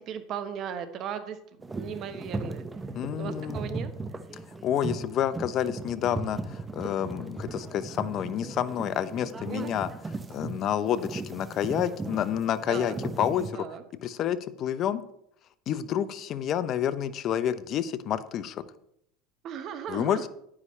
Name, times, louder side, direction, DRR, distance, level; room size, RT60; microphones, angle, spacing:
voice 1, 0.0-2.6 3.2-3.9 9.4-9.7 12.7-13.0 13.5-13.8 19.4-20.3, right 8 dB, 45° right, 9 dB, 1.2 m, -37 dB
sound 1, 1.6-13.5, right 3 dB, 15° right, 0.7 m, -37 dB
voice 2, 2.9-3.6 4.6-9.9 10.3-13.6 14.0-15.0 15.7-18.6 19.9-20.2, left 10 dB, 45° left, 13 dB, 0.7 m, -29 dB
9.7 x 9.6 x 3.3 m, 0.73 s
supercardioid pair, 130°, 0 cm